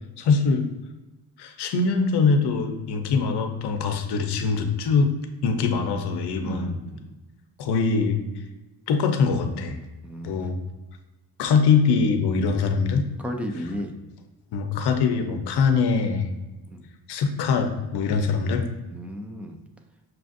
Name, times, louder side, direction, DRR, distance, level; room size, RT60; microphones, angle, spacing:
voice 1, 0.2-0.7 1.4-5.1 5.4-6.8 7.6-8.2 8.9-9.8 10.2-10.6 11.4-13.0 14.5-16.3 17.1-18.7, left 5 dB, 75° left, 6 dB, 0.6 m, -23 dB
voice 2, 6.4-7.0 10.0-10.3 13.2-13.9 16.7-16.8 18.2-18.5 18.9-19.6, equal, 5° right, 4 dB, 0.3 m, -34 dB
6.0 x 2.5 x 2.5 m, 1.1 s
cardioid pair, 115°, 40 cm